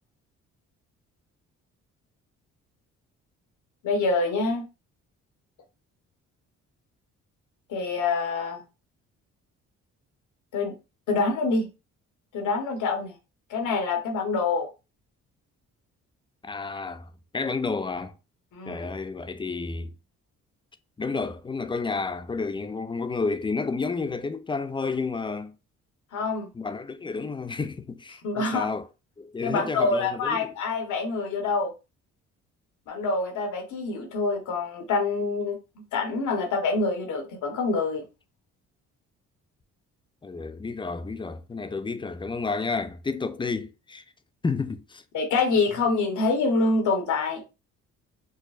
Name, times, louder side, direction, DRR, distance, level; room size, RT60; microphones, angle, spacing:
voice 1, 3.8-4.6 7.7-8.6 10.5-10.7 11.1-11.7 12.3-13.1 13.5-14.7 18.5-18.8 26.1-26.5 28.2-28.7 29.4-31.7 32.9-38.0 45.1-47.4, left 3 dB, 75° left, 1.1 m, -26 dB
voice 2, 16.4-18.2 18.7-19.9 21.0-25.5 26.5-28.9 29.2-30.5 40.2-44.0 44.4-45.0, left 4 dB, 15° left, 0.4 m, -31 dB
4.6 x 2.0 x 2.4 m
cardioid pair, 90°, 30 cm